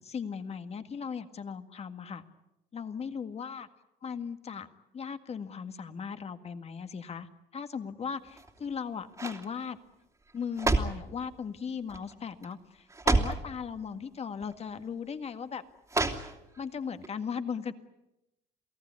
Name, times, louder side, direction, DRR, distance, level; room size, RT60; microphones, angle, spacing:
voice 1, 0.0-2.2 2.7-3.7 4.0-4.7 4.9-7.3 7.5-9.8 10.3-15.6 16.6-17.7, left 6 dB, 40° left, 9 dB, 1.9 m, -37 dB
sound 1, 8.3-8.7 9.1-9.5 10.3-11.1 11.9-12.1 12.4-12.5 12.9-13.5 14.4-14.5 15.9-16.6 17.0-17.1, right 2 dB, 20° right, 2.8 m, -29 dB
28.5 x 18.0 x 9.7 m, 0.91 s
cardioid pair, 110°, 17 cm